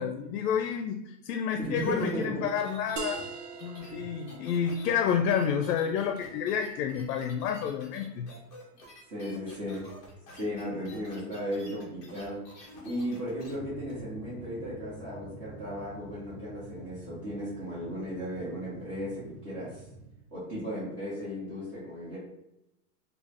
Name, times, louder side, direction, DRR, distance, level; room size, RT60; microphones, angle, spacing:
voice 1, 0.0-3.2 3.6-8.3, left 7 dB, 70° left, 6 dB, 0.5 m, -29 dB
voice 2, 1.6-2.4 9.1-9.9 10.3-12.4 12.8-19.8 20.3-22.2, equal, 30° right, -12 dB, 1.4 m, -35 dB
sound 1, 1.8-13.5 13.9-14.0, left 1 dB, 20° left, 0.5 m, -50 dB
sound 2, 3.0-8.3, right 6 dB, 75° right, 0.6 m, -45 dB
sound 3, 13.5-20.1, right 1 dB, 60° right, 0.9 m, -47 dB
3.5 x 2.4 x 3.3 m, 0.84 s
supercardioid pair, 170°, 48 cm